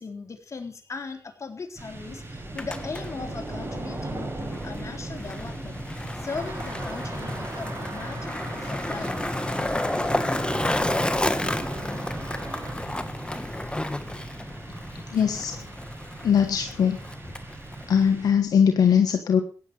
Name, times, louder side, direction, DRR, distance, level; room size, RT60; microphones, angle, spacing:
voice 1, 0.0-9.1, left 4 dB, 50° left, 4 dB, 3.8 m, -38 dB
sound 1, 1.8-18.7, right 2 dB, 40° right, 7.1 m, -38 dB
Skateboard, 2.4-18.1, left 1 dB, 15° left, 1.6 m, -31 dB
sound 2, 6.3-12.8, right 4 dB, 60° right, 3.6 m, -41 dB
voice 2, 15.1-15.6 16.2-17.0 17.9-19.4, left 7 dB, 85° left, 5 dB, 1.4 m, -20 dB
16.0 x 9.8 x 6.5 m, 0.40 s
cardioid pair, 50°, 6 cm